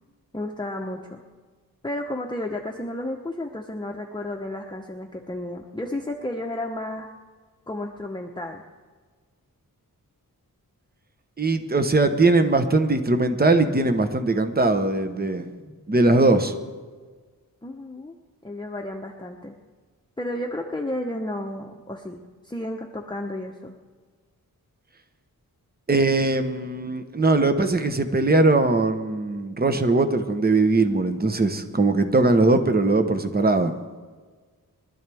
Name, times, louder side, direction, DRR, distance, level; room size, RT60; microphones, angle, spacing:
voice 1, 0.3-1.2 1.8-7.1 7.7-8.6 15.6-15.8 17.6-18.2 18.4-19.5 20.2-23.7, left 1 dB, 15° left, 1 dB, 1.0 m, -32 dB
voice 2, 11.4-15.5 15.9-16.6 25.9-33.7, right 2 dB, 25° right, 8 dB, 1.1 m, -20 dB
23.5 x 12.5 x 3.5 m, 1.5 s
wide cardioid pair, 95°, 35 cm